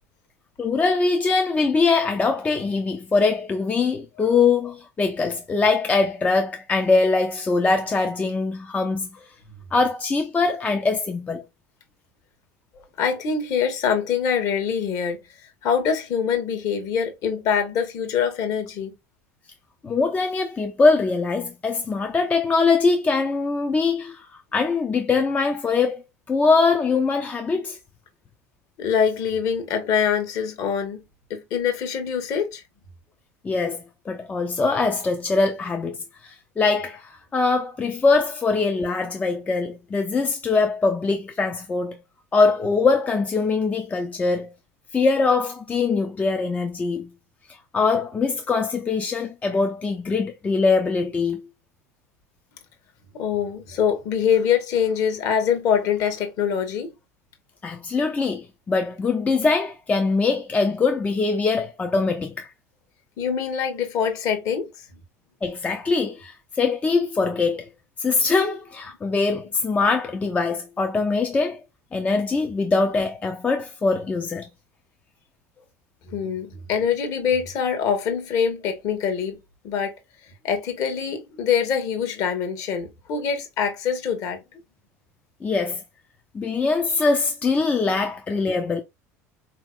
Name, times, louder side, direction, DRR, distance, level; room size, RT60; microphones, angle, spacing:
voice 1, 0.6-9.1 9.7-11.4 19.8-26.0 26.3-27.8 33.4-36.0 36.2-42.0 42.3-44.5 44.9-47.1 47.7-51.5 57.6-62.5 65.4-67.7 68.0-71.6 71.9-74.5 85.4-85.8 86.3-88.8, left 4 dB, 15° left, 0.5 m, -22 dB
voice 2, 13.0-18.9 28.8-31.0 31.3-32.6 53.1-56.9 63.2-64.7 76.1-79.4 79.6-80.0 80.4-84.4, left 7 dB, 45° left, 1.1 m, -24 dB
4.1 x 2.8 x 2.3 m
figure-of-eight pair, 70°, 8 cm